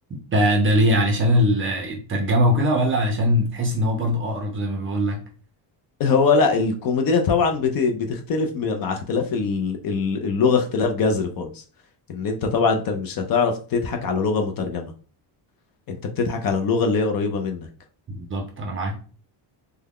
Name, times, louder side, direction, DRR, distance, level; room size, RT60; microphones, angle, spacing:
voice 1, 0.3-5.2 18.1-18.9, equal, 25° right, 0.5 m, -21 dB
voice 2, 6.0-11.6 12.1-14.9 15.9-17.7, left 4 dB, 45° left, 0.5 m, -22 dB
3.4 x 2.2 x 3.5 m
cardioid pair, 165°, 50 cm